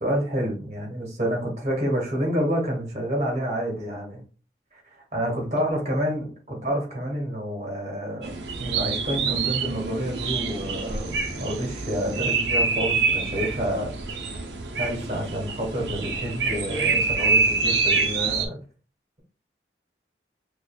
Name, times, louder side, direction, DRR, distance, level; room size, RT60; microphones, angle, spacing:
voice 1, 0.0-4.2 4.7-4.8 5.1-13.9 14.8-18.6, equal, 40° right, -1 dB, 1.3 m, -28 dB
sound 1, 8.2-18.5, right 4 dB, 80° right, 0.7 m, -26 dB
4.8 x 2.6 x 2.3 m, 0.38 s
head